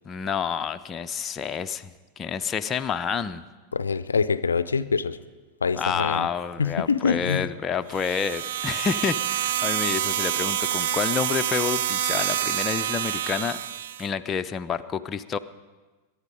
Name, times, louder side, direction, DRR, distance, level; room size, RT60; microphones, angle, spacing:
voice 1, 0.1-3.4 5.7-13.6 14.0-15.4, left 6 dB, 25° left, 8 dB, 0.5 m, -29 dB
voice 2, 3.7-5.2 5.6-6.3 6.6-7.5, left 5 dB, 75° left, 15 dB, 0.5 m, -25 dB
sound 1, 7.9-14.1, right 11 dB, 55° right, 0.4 m, -27 dB
23.0 x 11.0 x 5.2 m, 1.3 s
figure-of-eight pair, 90°, 0 cm